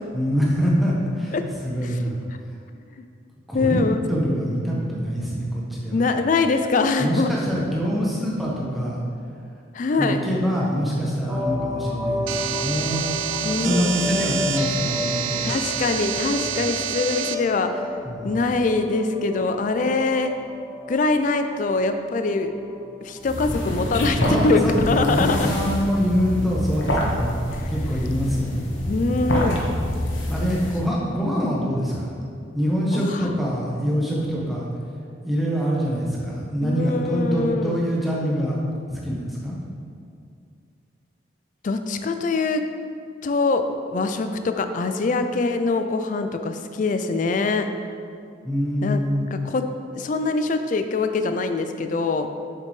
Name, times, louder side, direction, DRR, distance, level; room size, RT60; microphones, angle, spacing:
voice 1, 0.1-2.2 3.5-3.8 4.1-6.0 7.0-9.0 10.0-13.1 13.6-15.5 16.4-16.6 18.0-18.3 24.3-27.3 27.7-28.6 29.1-29.7 30.3-32.1 32.5-34.7 35.2-38.6 38.9-39.6 48.4-49.3, equal, ahead, -5 dB, 1.0 m, -25 dB
voice 2, 3.5-4.0 5.9-7.3 9.7-10.2 13.4-13.9 15.4-17.7 18.2-20.3 20.9-22.5 23.0-25.4 27.5-27.6 28.9-29.6 30.5-30.7 32.9-33.1 36.6-37.8 41.6-42.6 43.2-47.7 48.8-49.0 49.3-49.6 49.9-52.3, left 3 dB, 40° left, 8 dB, 0.3 m, -23 dB
sound 1, 11.3-23.8, left 2 dB, 15° right, 0.7 m, -33 dB
sound 2, 12.3-17.4, right 9 dB, 75° right, 0.4 m, -28 dB
sound 3, 23.2-30.9, left 1 dB, 70° left, 1.0 m, -26 dB
6.7 x 6.6 x 3.2 m, 2.4 s
head